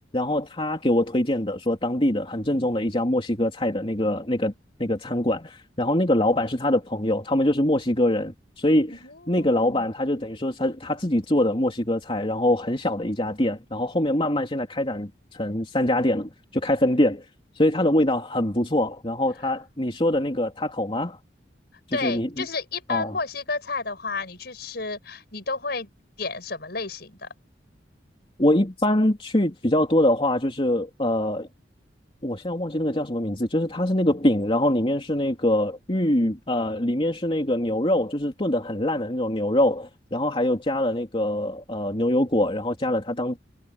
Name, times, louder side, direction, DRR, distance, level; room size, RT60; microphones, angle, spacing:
voice 1, 0.1-4.5 4.8-9.0 9.3-17.2 17.6-21.2 21.9-22.4 22.9-23.1 28.4-31.5 32.2-43.4, left 1 dB, 30° left, 3.2 m, -24 dB
voice 2, 8.9-9.9 21.9-25.9 26.2-27.3, left 4 dB, 60° left, 5.9 m, -31 dB
head